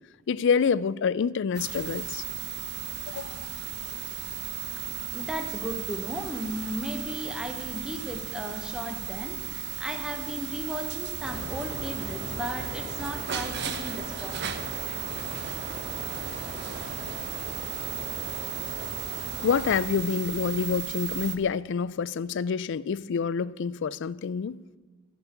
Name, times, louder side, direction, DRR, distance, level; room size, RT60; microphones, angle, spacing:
voice 1, 0.3-2.2 3.1-3.5 19.4-24.6, left 6 dB, 60° left, 0.4 m, -27 dB
sound 1, 1.5-21.4, right 10 dB, 55° right, 0.8 m, -36 dB
voice 2, 5.1-14.4, equal, 5° right, 1.1 m, -35 dB
sound 2, 11.2-19.9, right 1 dB, 30° right, 2.0 m, -39 dB
15.5 x 5.4 x 8.2 m
head